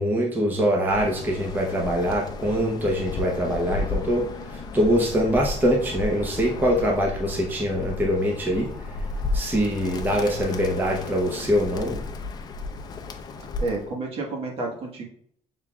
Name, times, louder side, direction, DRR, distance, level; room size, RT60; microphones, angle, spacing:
voice 1, 0.0-8.7 9.3-12.0, equal, 15° right, -1 dB, 0.7 m, -23 dB
Bird, 0.8-13.9, left 3 dB, 35° left, 0.5 m, -33 dB
voice 2, 13.6-15.0, right 3 dB, 50° right, 1 dB, 1.2 m, -30 dB
6.5 x 3.6 x 2.2 m, 0.64 s
cardioid pair, 155°, 12 cm